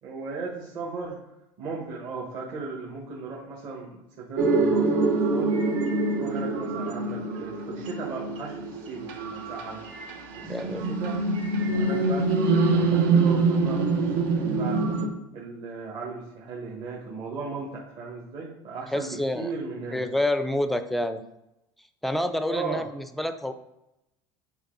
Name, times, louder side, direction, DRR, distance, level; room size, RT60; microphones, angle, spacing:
voice 1, 0.0-1.2 1.6-5.6 6.2-9.8 10.3-10.5 10.9-11.2 11.6-15.0 15.3-20.0 22.5-22.8, right 4 dB, 50° right, -4 dB, 1.5 m, -36 dB
sound 1, 4.4-15.1, right 3 dB, 85° right, 1.2 m, -25 dB
voice 2, 10.4-10.9 18.9-19.5 19.9-21.2 22.0-23.5, left 1 dB, ahead, 10 dB, 0.4 m, -28 dB
8.1 x 4.2 x 3.9 m, 0.89 s
cardioid pair, 145°, 10 cm